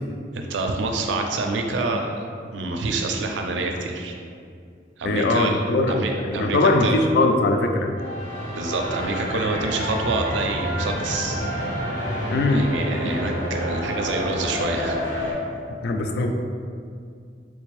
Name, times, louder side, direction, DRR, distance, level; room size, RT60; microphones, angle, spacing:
voice 1, 0.3-2.3 2.5-4.2 5.0-5.6 5.9-7.0 8.6-11.5 12.5-15.4, right 3 dB, 80° right, 3 dB, 0.4 m, -27 dB
voice 2, 5.0-6.0 6.2-7.9 12.3-12.7 15.8-16.3, left 2 dB, 60° left, 4 dB, 0.3 m, -20 dB
sound 1, 8.0-15.3, equal, 75° left, 1.2 m, -28 dB
3.5 x 2.5 x 3.1 m, 2.3 s
head